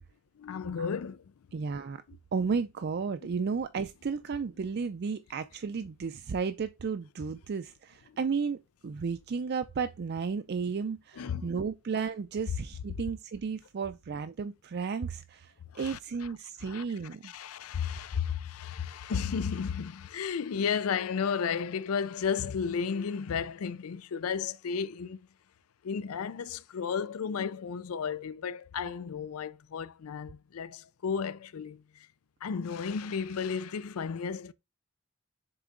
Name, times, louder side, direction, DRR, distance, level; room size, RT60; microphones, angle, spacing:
voice 1, 0.4-1.2 11.2-11.5 15.7-16.0 16.6-16.8 17.2-25.2 25.8-31.8 32.4-34.5, left 6 dB, 90° left, 0.4 m, -33 dB
voice 2, 1.5-2.0 2.3-17.3 17.9-18.0, right 5 dB, 50° right, 0.4 m, -33 dB
6.8 x 3.9 x 3.7 m
head